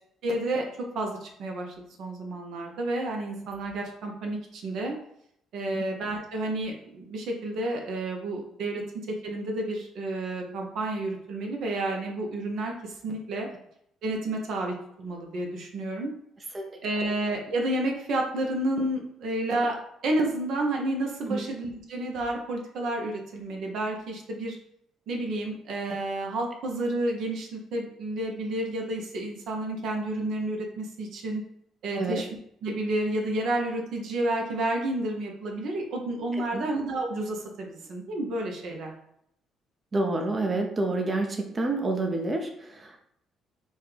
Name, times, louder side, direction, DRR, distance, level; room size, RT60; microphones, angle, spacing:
voice 1, 0.2-0.7 0.9-4.9 5.5-13.5 14.0-16.1 16.8-19.8 20.0-24.6 25.1-31.4 31.8-32.3 32.6-38.9, right 1 dB, 70° right, 1 dB, 0.8 m, -30 dB
voice 2, 36.3-36.7 39.9-43.0, right 2 dB, 35° right, 3 dB, 0.6 m, -28 dB
4.2 x 2.3 x 3.3 m, 0.73 s
supercardioid pair, 65°, 0 cm